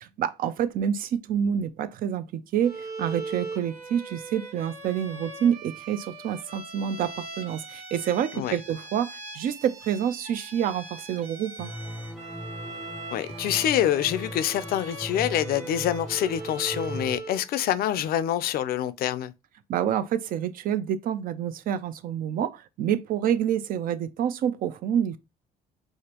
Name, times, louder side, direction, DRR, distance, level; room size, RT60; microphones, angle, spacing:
voice 1, 0.0-11.7 19.7-25.2, right 9 dB, 55° right, 0.5 m, -28 dB
Bowed string instrument, 2.6-17.5, right 3 dB, 40° right, 1.1 m, -40 dB
sound 1, 11.6-17.2, equal, ahead, 0.5 m, -39 dB
voice 2, 13.1-19.3, left 11 dB, 65° left, 0.4 m, -26 dB
4.9 x 2.1 x 2.9 m
cardioid pair, 110°, 17 cm